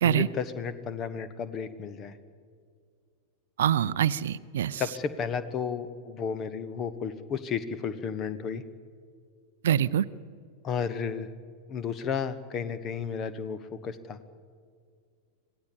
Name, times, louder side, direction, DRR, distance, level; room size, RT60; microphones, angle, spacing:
voice 1, 0.0-2.2 4.8-8.6 10.6-11.3 11.7-14.2, left 6 dB, 30° left, 14 dB, 1.3 m, -33 dB
voice 2, 3.6-4.8 9.6-10.0, right 10 dB, 60° right, 17 dB, 0.6 m, -24 dB
26.5 x 17.0 x 8.7 m, 2.2 s
figure-of-eight pair, 90°, 0 cm